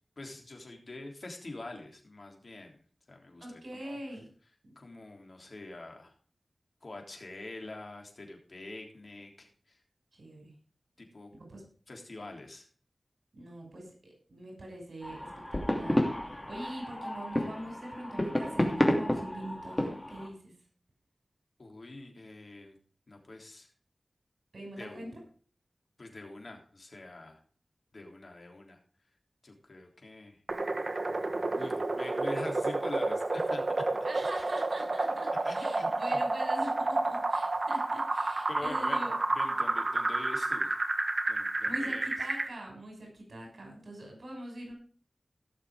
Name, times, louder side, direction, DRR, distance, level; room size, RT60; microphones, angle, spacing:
voice 1, 0.2-2.8 3.1-4.0 4.8-6.1 6.8-9.8 11.1-11.3 11.9-12.7 21.6-22.8 23.1-23.7 24.8-25.2 26.0-27.4 27.9-28.8 29.4-30.4 31.5-33.6 35.4-36.2 38.5-39.0 39.4-40.7 41.3-42.1, left 2 dB, 55° left, 2 dB, 3.5 m, -45 dB
voice 2, 3.4-4.2 10.2-10.5 11.4-11.6 13.3-20.5 24.5-25.2 34.0-39.1 41.6-44.7, right 1 dB, 70° right, 1 dB, 6.1 m, -43 dB
sound 1, 15.0-20.3, left 1 dB, 15° left, 2.7 m, -31 dB
sound 2, 30.5-42.5, right 2 dB, 50° right, 1.5 m, -30 dB
17.0 x 6.8 x 4.9 m, 0.42 s
wide cardioid pair, 75°, 0 cm